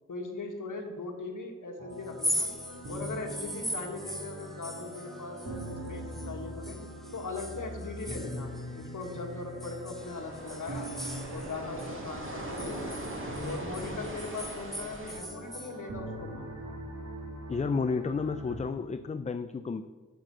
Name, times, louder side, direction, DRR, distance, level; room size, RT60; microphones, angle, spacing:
voice 1, 0.1-2.5 2.9-6.8 7.1-10.9 11.3-13.1 13.4-16.5, left 3 dB, 80° left, 2 dB, 1.5 m, -39 dB
sound 1, 1.8-18.6, equal, 65° right, 2.3 m, -42 dB
sound 2, 2.1-6.3 6.6-9.2 9.6-11.9 12.2-15.7, equal, ahead, 0.9 m, -39 dB
sound 3, 10.0-15.2, right 1 dB, 40° right, 1.9 m, -41 dB
voice 2, 17.5-19.9, left 4 dB, 25° left, 10 dB, 0.3 m, -31 dB
7.3 x 5.8 x 7.5 m, 1.5 s
wide cardioid pair, 65°, 31 cm